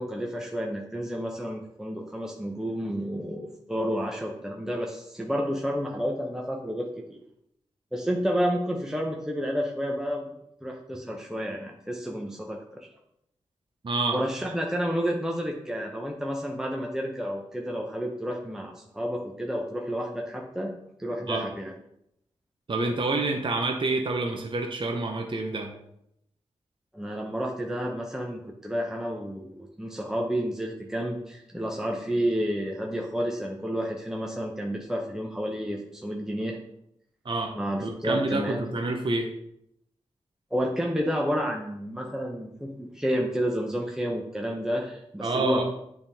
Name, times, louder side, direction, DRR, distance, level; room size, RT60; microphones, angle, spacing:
voice 1, 0.0-7.2 7.9-10.3 10.6-12.9 14.1-20.7 21.0-21.7 26.9-36.6 37.5-38.6 40.5-45.6, equal, 5° right, -1 dB, 0.8 m, -30 dB
voice 2, 13.8-14.2 21.3-21.4 22.7-25.7 37.2-37.5 37.8-39.3 45.2-45.6, right 2 dB, 45° right, 3 dB, 0.8 m, -28 dB
8.0 x 3.6 x 3.5 m, 0.77 s
cardioid pair, 60°, 12 cm